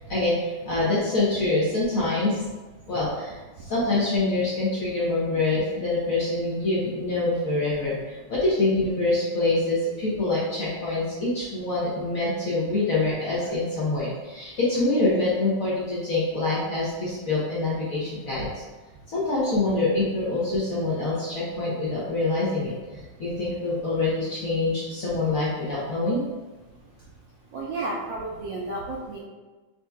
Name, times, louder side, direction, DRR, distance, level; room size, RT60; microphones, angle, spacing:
voice 1, 0.1-2.4 2.9-18.5 19.1-26.2, left 2 dB, 55° left, -8 dB, 0.9 m, -25 dB
voice 2, 27.5-29.2, right 2 dB, 75° right, -3 dB, 1.1 m, -32 dB
5.8 x 2.8 x 2.3 m, 1.2 s
omnidirectional pair, 2.4 m